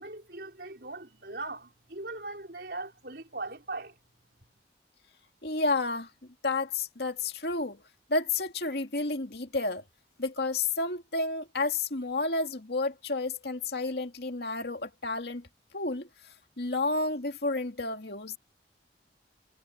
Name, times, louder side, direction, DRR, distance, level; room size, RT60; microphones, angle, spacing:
voice 1, 0.0-3.9, right 2 dB, 60° right, 4.8 m, -40 dB
voice 2, 5.4-6.1 6.4-7.8 8.1-9.8 10.2-15.4 15.7-16.1 16.6-18.4, left 3 dB, 65° left, 2.2 m, -31 dB
head